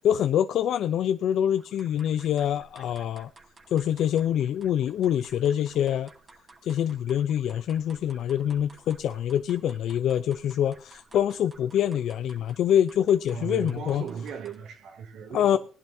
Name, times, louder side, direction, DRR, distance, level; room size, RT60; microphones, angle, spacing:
voice 1, 0.0-3.3 3.7-6.1 6.6-14.0 15.3-15.6, left 10 dB, 75° left, 0.6 m, -25 dB
sound 1, 1.6-14.8, right 3 dB, 35° right, 2.4 m, -55 dB
voice 2, 13.3-15.6, right 6 dB, 80° right, 2.9 m, -37 dB
19.0 x 11.0 x 2.8 m
cardioid pair, 90°, 0 cm